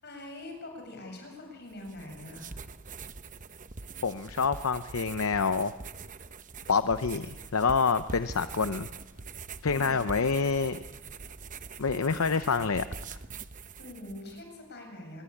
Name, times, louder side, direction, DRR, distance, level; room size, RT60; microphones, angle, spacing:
voice 1, 0.0-2.5 13.8-15.2, left 1 dB, 50° left, 3 dB, 7.6 m, -44 dB
sound 1, 1.7-14.4, right 4 dB, 40° right, 0.9 m, -44 dB
voice 2, 4.0-5.7 6.7-8.9 9.6-10.8 11.8-12.8, left 5 dB, 75° left, 11 dB, 0.7 m, -27 dB
25.5 x 22.0 x 8.5 m, 1.2 s
head